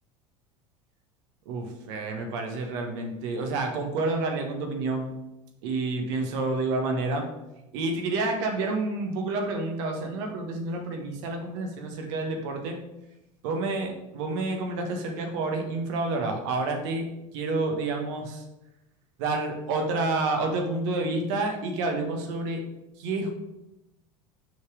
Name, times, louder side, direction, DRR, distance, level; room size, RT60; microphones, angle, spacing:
voice 1, 1.5-5.1 5.6-7.3 7.7-12.8 13.4-17.1 17.3-18.4 19.2-22.6 23.0-23.3, right 3 dB, 60° right, 3 dB, 1.6 m, -29 dB
6.4 x 4.9 x 5.0 m, 0.93 s
figure-of-eight pair, 75°, 17 cm